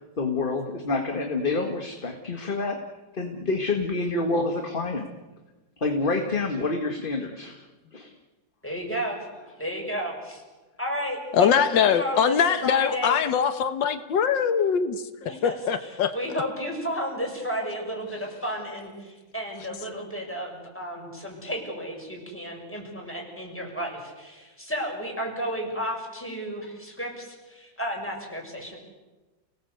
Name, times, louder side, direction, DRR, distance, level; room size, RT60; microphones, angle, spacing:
voice 1, 0.2-2.8 3.1-5.1 5.8-8.1, left 3 dB, 30° left, 4 dB, 1.8 m, -28 dB
voice 2, 8.6-9.2 9.6-10.4 10.8-13.2 15.2-28.8, equal, 5° left, -1 dB, 6.8 m, -33 dB
voice 3, 11.3-16.1, left 7 dB, 85° left, 9 dB, 1.8 m, -23 dB
30.0 x 18.5 x 8.1 m, 1.2 s
omnidirectional pair, 2.0 m